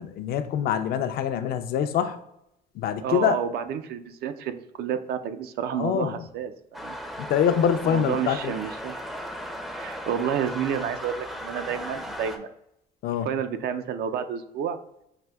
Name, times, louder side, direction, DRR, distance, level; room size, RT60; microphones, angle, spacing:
voice 1, 0.0-2.2 2.7-3.4 5.8-6.3 7.2-8.6 13.0-13.3, left 8 dB, 65° left, 9 dB, 0.4 m, -25 dB
voice 2, 3.0-7.0 7.8-9.0 9.7-12.5 13.2-14.8, right 8 dB, 70° right, 9 dB, 0.4 m, -30 dB
sound 1, 6.7-12.4, equal, ahead, 0.4 m, -36 dB
5.9 x 2.6 x 2.2 m, 0.81 s
cardioid pair, 110°, 17 cm